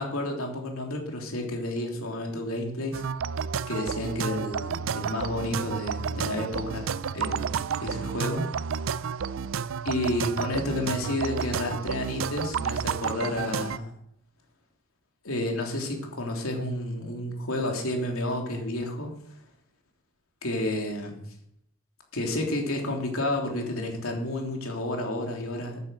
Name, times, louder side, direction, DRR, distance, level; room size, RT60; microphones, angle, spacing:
voice 1, 0.0-3.0 3.7-7.5 7.8-8.5 9.8-13.9 15.2-19.1 20.4-21.2 22.1-25.8, left 1 dB, 80° left, 1 dB, 3.2 m, -31 dB
sound 1, 2.9-13.8, right 6 dB, 65° right, 0.4 m, -31 dB
13.0 x 9.9 x 6.3 m, 0.72 s
head